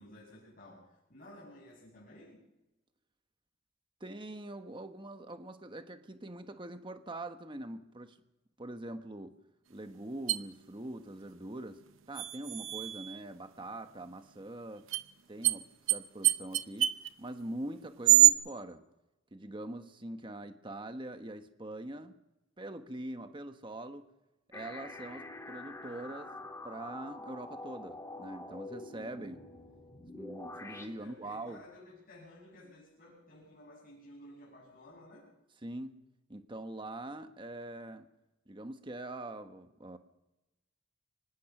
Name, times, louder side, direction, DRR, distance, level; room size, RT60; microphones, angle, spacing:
voice 1, 0.0-2.5 31.0-35.3, left 1 dB, 45° left, -3 dB, 7.8 m, -54 dB
voice 2, 4.0-8.2 8.6-9.3 9.7-11.8 12.1-14.8 15.3-16.9 17.2-18.8 19.3-22.1 22.6-24.0 24.5-26.3 26.6-29.4 30.1-31.6 35.6-36.0 36.3-38.1 38.5-40.0, right 1 dB, 25° right, 8 dB, 1.2 m, -43 dB
sound 1, 10.3-10.4 12.1-13.2 14.9-15.0 15.4-15.6 15.9-16.0 16.2-17.1 18.0-18.3, right 14 dB, 80° right, 0.8 m, -24 dB
sound 2, 24.5-30.9, left 2 dB, 15° left, 2.6 m, -46 dB
25.0 x 19.5 x 6.0 m, 0.98 s
head